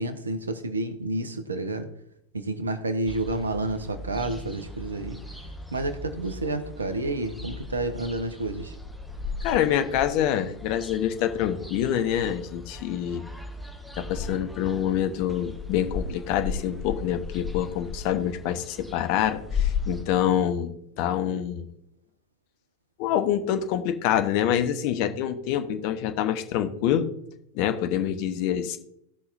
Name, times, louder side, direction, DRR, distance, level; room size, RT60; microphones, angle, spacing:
voice 1, 0.0-1.9 2.3-5.2 5.7-8.7, right 2 dB, 75° right, 10 dB, 1.1 m, -30 dB
sound 1, 3.1-20.0, left 5 dB, ahead, 1.2 m, -36 dB
voice 2, 9.4-13.2 14.0-21.7 23.0-27.1 27.5-28.8, left 10 dB, 45° left, 8 dB, 0.9 m, -26 dB
17.5 x 6.0 x 2.6 m, 0.76 s
figure-of-eight pair, 90°, 0 cm